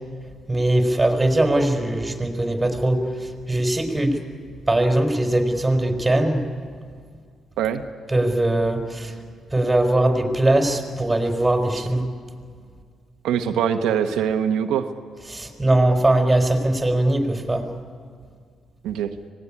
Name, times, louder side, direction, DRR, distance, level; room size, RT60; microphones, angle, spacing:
voice 1, 0.5-4.2 4.7-6.4 8.1-9.2 9.5-12.1 15.3-17.7, right 1 dB, 15° right, 4 dB, 4.2 m, -21 dB
voice 2, 13.2-14.9 18.8-19.1, right 8 dB, 90° right, 5 dB, 1.1 m, -22 dB
25.0 x 18.5 x 9.9 m, 2.1 s
cardioid pair, 90°, 0 cm